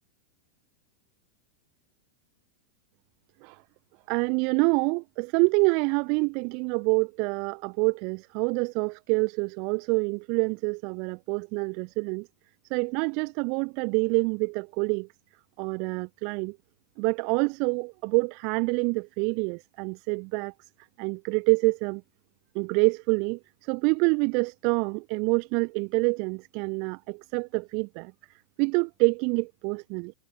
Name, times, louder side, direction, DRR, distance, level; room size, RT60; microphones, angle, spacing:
voice 1, 4.1-12.3 12.7-15.1 15.6-16.6 17.0-20.5 21.0-22.0 22.5-28.1 28.6-30.1, right 34 dB, 45° right, 0.6 m, -26 dB
figure-of-eight pair, 90°, 0 cm